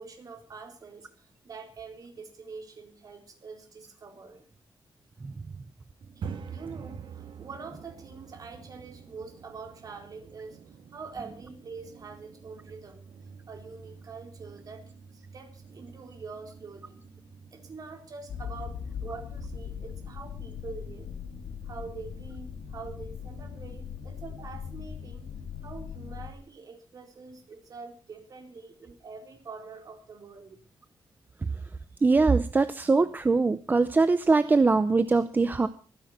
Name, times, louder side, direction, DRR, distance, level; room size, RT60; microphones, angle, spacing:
voice 1, 0.0-4.4 6.2-14.8 15.1-17.0 17.5-21.1 21.6-25.3 25.6-30.6, right 4 dB, 45° right, 4 dB, 4.1 m, -45 dB
sound 1, 6.0-25.9, right 6 dB, 65° right, 2.6 m, -48 dB
sound 2, 18.3-26.3, left 7 dB, 90° left, 2.2 m, -40 dB
voice 2, 32.0-35.7, right 3 dB, 20° right, 13 dB, 0.6 m, -22 dB
24.5 x 10.0 x 4.4 m, 0.38 s
wide cardioid pair, 180°, 9 cm